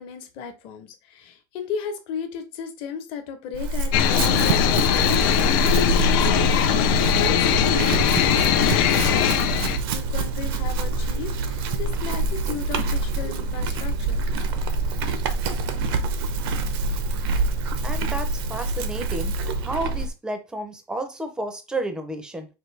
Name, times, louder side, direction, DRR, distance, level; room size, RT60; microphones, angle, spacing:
voice 1, 0.0-14.2, left 7 dB, 45° left, 1.0 m, -34 dB
Chewing mastication / Livestock farm animals working animals, 3.5-20.1, right 3 dB, 70° right, 0.7 m, -25 dB
sound 1, 3.9-9.8, left 11 dB, 65° left, 0.6 m, -21 dB
voice 2, 17.8-19.3 19.6-22.5, right 1 dB, 5° right, 0.6 m, -31 dB
4.5 x 2.7 x 3.2 m
supercardioid pair, 150°, 13 cm